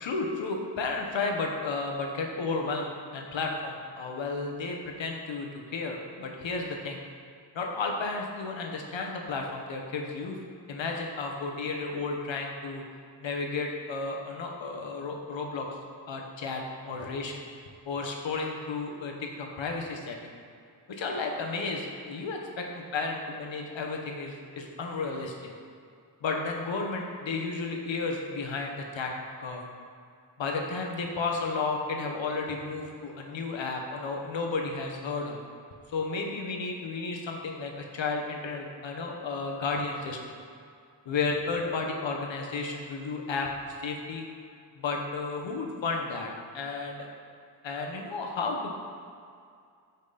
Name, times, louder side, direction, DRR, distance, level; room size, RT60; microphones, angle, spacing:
voice 1, 0.0-7.0 7.5-10.4 10.7-12.8 13.2-15.7 16.1-17.4 17.8-20.2 20.9-25.3 26.2-29.1 29.4-29.6 30.4-35.4 35.9-40.2 41.0-44.2 44.8-47.0 47.6-48.8, left 3 dB, 85° left, 1 dB, 1.5 m, -33 dB
14.0 x 6.3 x 4.3 m, 2.3 s
wide cardioid pair, 150°, 44 cm